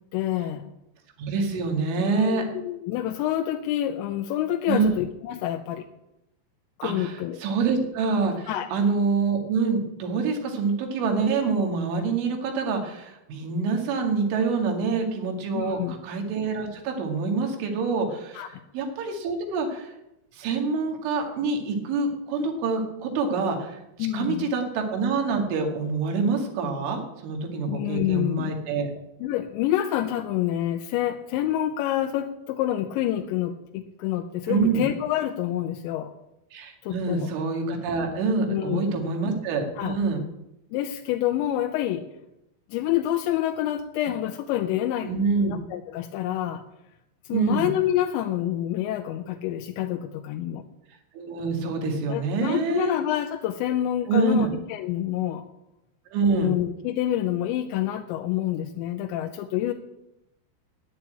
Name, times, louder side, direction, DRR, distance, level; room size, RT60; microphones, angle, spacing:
voice 1, 0.1-0.7 2.0-5.9 6.8-7.4 8.5-8.7 15.5-15.9 18.3-18.6 24.0-24.5 27.7-28.5 29.2-36.1 36.8-37.3 38.5-39.0 39.8-40.0 40.7-42.0 42.7-45.1 45.4-46.6 47.3-50.6 52.1-55.5 56.3-59.7, left 12 dB, 80° left, 4 dB, 3.0 m, -27 dB
voice 2, 1.2-2.4 4.7-4.9 6.8-18.5 18.7-19.9 20.3-23.8 24.1-28.9 34.5-34.8 36.5-40.2 45.0-45.6 47.3-47.7 51.1-53.0 54.1-54.5 56.1-56.5, right 4 dB, 90° right, 3 dB, 4.6 m, -26 dB
10.0 x 10.0 x 8.8 m, 0.88 s
omnidirectional pair, 5.4 m